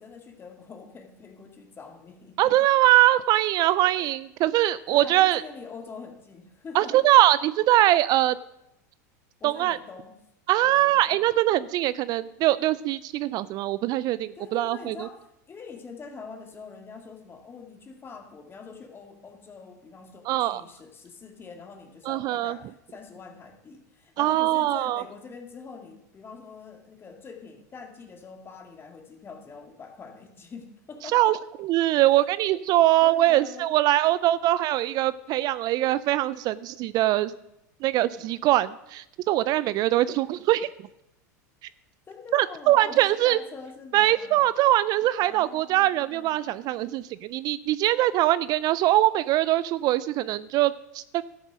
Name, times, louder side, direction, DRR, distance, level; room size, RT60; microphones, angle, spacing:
voice 1, 0.0-2.6 3.4-4.1 4.5-6.9 9.4-10.1 10.6-11.2 14.4-31.4 32.1-32.3 32.7-33.7 38.1-38.3 42.1-44.4 45.2-46.8, left 5 dB, 25° left, 4 dB, 2.2 m, -44 dB
voice 2, 2.4-5.4 6.7-8.3 9.4-9.8 10.5-15.0 20.3-20.6 22.1-22.6 24.2-25.0 31.1-37.3 37.8-40.7 42.3-43.4 43.9-51.2, right 15 dB, 45° right, 17 dB, 0.4 m, -22 dB
12.5 x 7.3 x 6.2 m, 0.85 s
hypercardioid pair, 105°, 9 cm